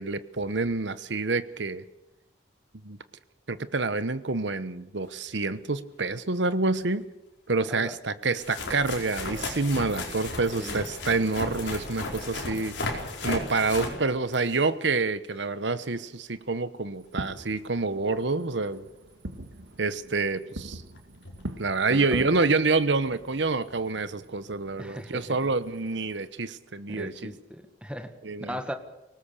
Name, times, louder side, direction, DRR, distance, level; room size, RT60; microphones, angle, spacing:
voice 1, 0.0-1.8 2.8-3.0 3.5-7.0 7.5-12.8 13.2-18.9 19.8-20.8 21.6-27.3 28.2-28.6, right 3 dB, 70° right, 13 dB, 1.1 m, -27 dB
sound 1, 6.2-6.3 7.5-7.6 8.4-14.7 19.9-20.0 20.9-21.0 21.2-21.4 23.3-23.4, left 2 dB, 70° left, 4.7 m, -35 dB
Fireworks, 17.0-26.3, right 1 dB, 90° right, 1.8 m, -43 dB
voice 2, 21.9-22.3 24.8-25.4 26.9-28.1 28.4-28.7, equal, 5° right, 7 dB, 1.7 m, -37 dB
23.5 x 19.0 x 6.9 m, 0.93 s
head